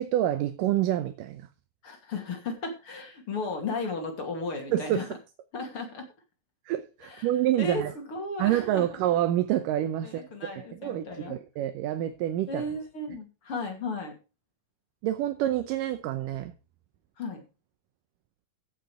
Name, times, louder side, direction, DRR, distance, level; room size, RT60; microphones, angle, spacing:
voice 1, 0.0-1.5 4.7-5.1 6.7-7.9 8.4-12.7 15.0-16.5, right 12 dB, 85° right, 2.4 m, -27 dB
voice 2, 1.8-5.1 5.5-6.0 7.0-7.3 7.6-9.0 10.0-11.3 12.5-14.1 17.2-17.4, left 3 dB, 45° left, 3.3 m, -35 dB
15.0 x 6.6 x 4.9 m
omnidirectional pair, 3.8 m